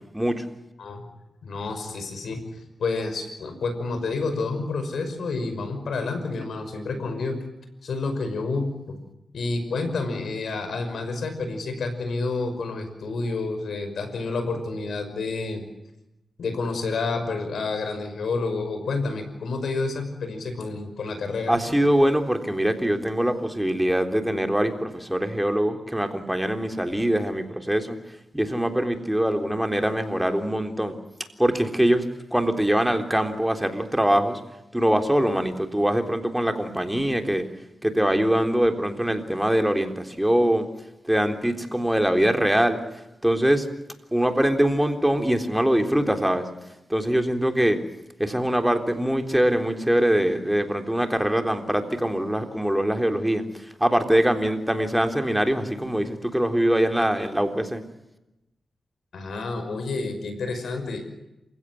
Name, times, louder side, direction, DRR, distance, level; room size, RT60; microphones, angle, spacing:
voice 1, 0.1-0.4 21.5-28.0 28.3-31.0 31.4-34.4 34.7-37.5 37.8-40.7 41.0-42.8 43.2-43.7 44.1-46.5 46.9-47.8 48.2-53.4 53.8-57.8, right 1 dB, 5° right, 5 dB, 3.6 m, -23 dB
voice 2, 1.4-7.4 7.8-9.0 9.3-15.6 16.4-21.6 59.1-61.1, left 3 dB, 80° left, 8 dB, 5.7 m, -29 dB
28.0 x 16.5 x 9.4 m, 0.93 s
cardioid pair, 65°, 0 cm